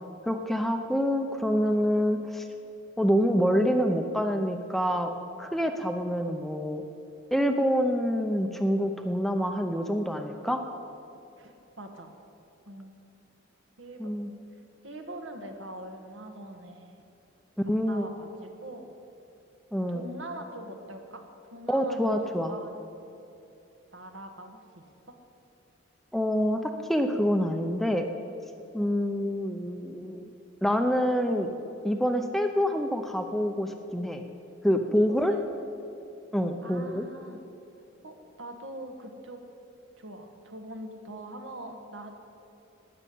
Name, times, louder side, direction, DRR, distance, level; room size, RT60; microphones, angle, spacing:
voice 1, 0.3-2.4 3.0-5.1 5.4-6.8 7.3-10.6 14.0-14.3 17.7-18.1 19.7-20.0 21.7-22.5 26.1-28.1 28.7-30.3 30.6-31.5 31.8-34.2 34.6-35.3 36.3-37.0, equal, ahead, 5 dB, 0.6 m, -26 dB
voice 2, 11.4-12.2 12.6-12.9 13.8-14.2 14.8-17.0 17.6-18.9 19.9-22.8 23.9-25.2 35.1-35.6 36.6-37.4 38.0-39.4 40.0-42.1, right 1 dB, 75° right, 4 dB, 1.6 m, -43 dB
12.5 x 9.6 x 8.5 m, 2.8 s
head